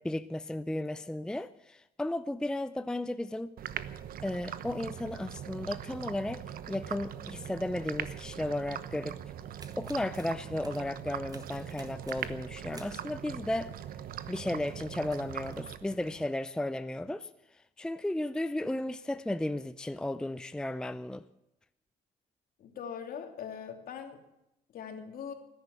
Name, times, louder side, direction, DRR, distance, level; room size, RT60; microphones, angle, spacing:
voice 1, 0.0-3.5 4.2-9.2 9.8-13.8 14.3-17.3 17.8-21.2, left 1 dB, 5° left, 0.5 m, -34 dB
sound 1, 3.6-16.3, right 10 dB, 60° right, 1.0 m, -41 dB
sound 2, 9.6-11.0 11.3-12.4 12.7-13.1 14.5-15.7, right 3 dB, 20° right, 1.6 m, -54 dB
voice 2, 22.6-24.2 24.7-25.3, left 7 dB, 60° left, 2.8 m, -41 dB
18.5 x 10.5 x 7.0 m
cardioid pair, 110°, 17 cm